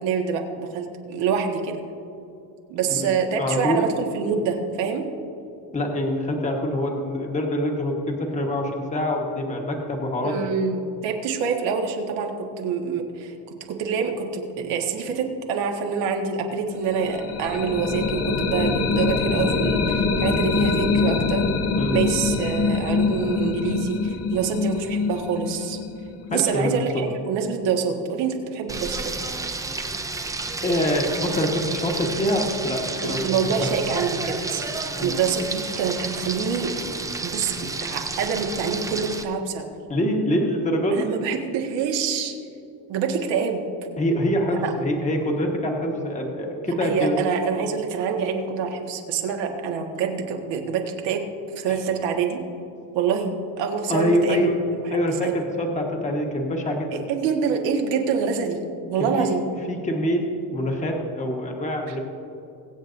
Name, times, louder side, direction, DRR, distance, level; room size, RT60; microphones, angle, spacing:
voice 1, 0.0-1.8 2.7-5.0 10.2-13.3 13.7-21.5 21.9-25.8 26.3-29.1 33.0-36.7 37.2-39.6 40.9-42.3 42.9-43.6 44.6-44.7 46.8-51.3 51.5-52.4 52.9-54.5 55.2-55.4 57.1-58.6 58.9-59.4 61.9-62.0, right 6 dB, 75° right, 2 dB, 1.6 m, -26 dB
voice 2, 3.4-3.9 5.7-10.4 21.7-21.9 26.3-27.0 30.6-33.7 35.0-35.1 39.9-41.0 44.0-47.2 51.7-51.8 53.9-54.5 54.9-57.0 59.2-59.3 59.7-60.2 60.5-62.0, equal, 15° left, 1 dB, 1.4 m, -25 dB
sound 1, 16.9-26.7, left 4 dB, 35° left, 0.8 m, -24 dB
Frying (food), 28.7-39.2, right 3 dB, 10° right, 0.3 m, -31 dB
23.0 x 8.1 x 2.6 m, 2.7 s
cardioid pair, 150°, 45 cm